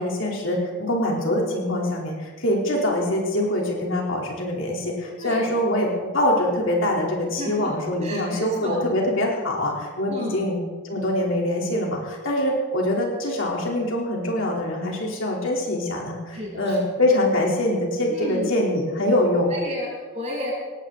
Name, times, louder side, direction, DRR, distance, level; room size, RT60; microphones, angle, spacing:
voice 1, 0.0-10.6 10.8-19.5, left 1 dB, 60° left, -2 dB, 3.3 m, -24 dB
voice 2, 5.2-5.6 7.4-7.7 8.0-8.9 10.1-10.4 16.3-16.8 18.1-18.5 19.5-20.5, equal, 30° right, -4 dB, 6.4 m, -32 dB
19.5 x 16.5 x 3.9 m, 1.4 s
head